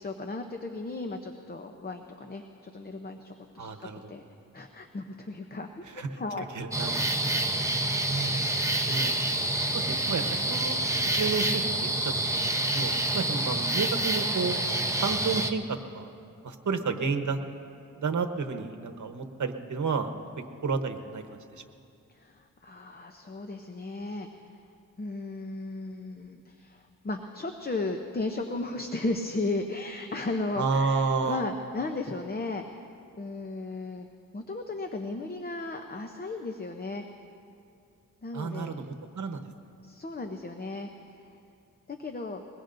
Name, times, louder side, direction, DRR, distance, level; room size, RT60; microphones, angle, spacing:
voice 1, 0.0-4.2 4.5-5.7 5.9-6.5 22.1-24.4 25.0-32.9 33.2-34.1 34.3-37.1 38.2-38.8 39.8-41.3 41.9-42.4, left 2 dB, 30° left, 5 dB, 0.7 m, -35 dB
voice 2, 3.6-4.1 5.9-6.2 6.5-7.1 8.1-8.5 8.9-9.1 9.7-14.6 15.0-16.1 16.4-17.4 18.0-20.1 20.6-21.2 21.5-21.6 30.6-31.4 38.3-39.5, right 4 dB, 65° right, 6 dB, 1.1 m, -31 dB
sound 1, 6.7-15.5, right 1 dB, 10° right, 0.7 m, -27 dB
22.0 x 21.5 x 2.6 m, 2.5 s
wide cardioid pair, 120°, 33 cm